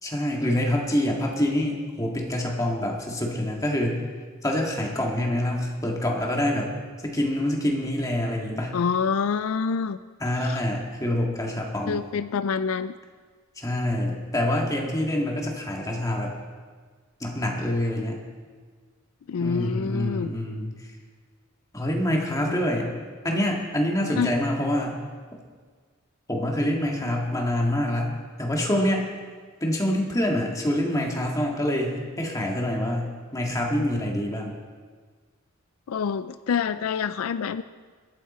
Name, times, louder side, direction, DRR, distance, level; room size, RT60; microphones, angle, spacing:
voice 1, 0.0-4.0 4.4-6.7 7.0-8.8 10.2-12.0 13.6-16.3 17.2-18.2 19.4-20.9 21.7-22.9 23.2-25.0 26.3-29.0 29.6-34.6, left 1 dB, 15° left, -1 dB, 2.0 m, -26 dB
voice 2, 8.7-10.0 10.4-10.6 11.9-12.9 19.3-20.3 22.4-22.6 24.2-24.3 35.9-37.6, left 6 dB, 75° left, 14 dB, 0.4 m, -27 dB
22.0 x 9.3 x 4.3 m, 1.6 s
head